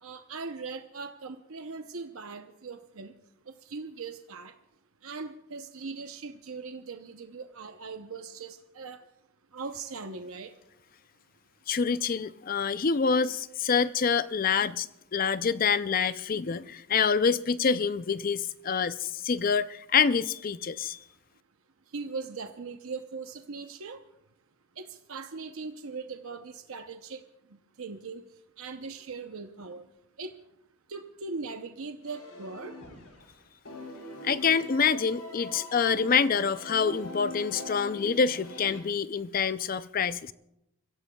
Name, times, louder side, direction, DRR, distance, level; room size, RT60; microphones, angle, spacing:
voice 1, 0.0-3.1 3.5-4.5 5.0-9.0 9.5-10.5 21.9-24.0 24.8-27.2 27.5-28.2 28.6-29.9 30.2-30.4 30.9-32.8, right 4 dB, 70° right, 0.8 m, -40 dB
voice 2, 11.7-21.0 34.2-40.3, left 6 dB, 40° left, 0.4 m, -26 dB
sound 1, 32.0-33.3 33.6-38.8, left 2 dB, 85° left, 3.4 m, -43 dB
29.5 x 16.0 x 2.3 m
head